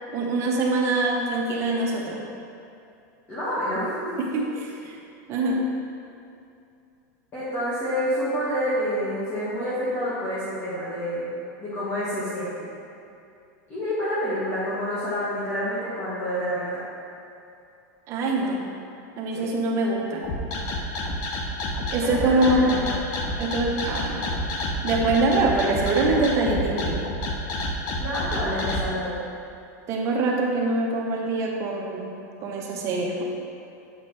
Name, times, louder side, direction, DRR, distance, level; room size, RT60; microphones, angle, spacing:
voice 1, 0.1-2.2 4.2-5.0 5.3-5.7 18.1-18.6 19.2-20.3 21.9-22.8 23.4-24.3 24.8-27.0 29.9-32.1 32.4-33.2, right 2 dB, 30° right, -1 dB, 0.9 m, -24 dB
voice 2, 3.3-4.2 7.3-11.3 11.6-12.5 13.7-16.8 19.3-19.5 22.0-22.9 28.0-29.2, equal, 25° left, -12 dB, 1.6 m, -28 dB
sound 1, 20.2-28.8, left 2 dB, 40° left, 0.8 m, -29 dB
8.4 x 5.2 x 3.3 m, 2.6 s
supercardioid pair, 155°, 9 cm